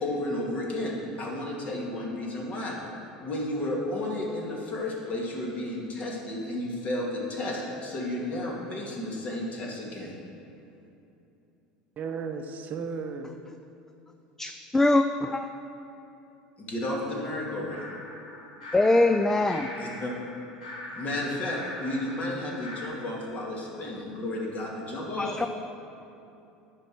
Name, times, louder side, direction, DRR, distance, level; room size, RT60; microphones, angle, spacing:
voice 1, 0.0-0.9 1.2-2.8 3.2-10.1 16.6-17.8 19.7-20.1 20.9-25.4, left 1 dB, 40° left, -2 dB, 2.2 m, -32 dB
voice 2, 12.0-13.3, right 5 dB, 45° right, 6 dB, 0.7 m, -34 dB
voice 3, 14.4-15.4 18.7-19.7 25.2-25.5, left 2 dB, 10° left, 7 dB, 0.3 m, -23 dB
sound 1, 17.7-22.9, left 1 dB, 85° left, 1.6 m, -42 dB
10.5 x 4.6 x 6.1 m, 2.8 s
hypercardioid pair, 80°, 4 cm